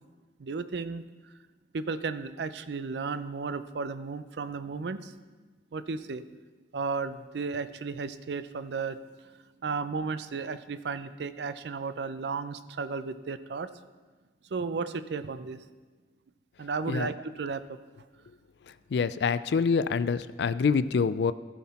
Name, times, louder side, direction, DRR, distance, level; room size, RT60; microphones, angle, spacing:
voice 1, 0.4-1.0 1.7-5.1 5.7-6.2 6.7-9.0 9.6-13.7 14.5-15.6 16.6-17.8, right 4 dB, 75° right, 13 dB, 0.5 m, -34 dB
voice 2, 18.9-21.3, left 5 dB, 70° left, 15 dB, 0.4 m, -26 dB
15.0 x 5.9 x 4.2 m, 1.3 s
head